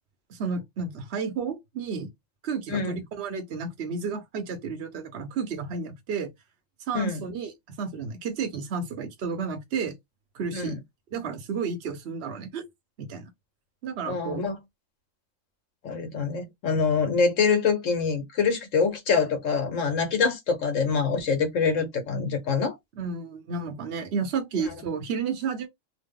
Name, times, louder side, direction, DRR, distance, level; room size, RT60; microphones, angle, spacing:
voice 1, 0.3-2.1 2.4-6.3 6.9-7.5 7.8-9.9 10.3-10.8 11.1-12.6 13.0-13.3 13.8-14.5 23.0-25.7, right 5 dB, 60° right, 0.9 m, -32 dB
voice 2, 14.0-14.6 15.8-22.7, left 5 dB, 70° left, 1.3 m, -25 dB
2.9 x 2.1 x 3.6 m
omnidirectional pair, 1.4 m